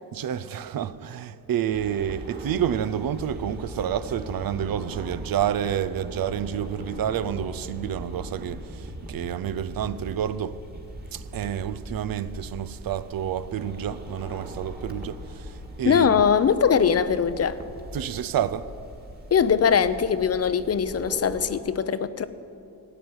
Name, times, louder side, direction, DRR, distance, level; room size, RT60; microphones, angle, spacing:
voice 1, 0.1-10.6 11.1-16.2 17.9-18.7, right 9 dB, 60° right, 0.6 m, -29 dB
sound 1, 1.7-21.6, equal, 25° right, 2.0 m, -40 dB
voice 2, 15.9-17.6 19.3-22.2, left 7 dB, 40° left, 0.6 m, -21 dB
14.0 x 8.0 x 9.4 m
cardioid pair, 95°, 40 cm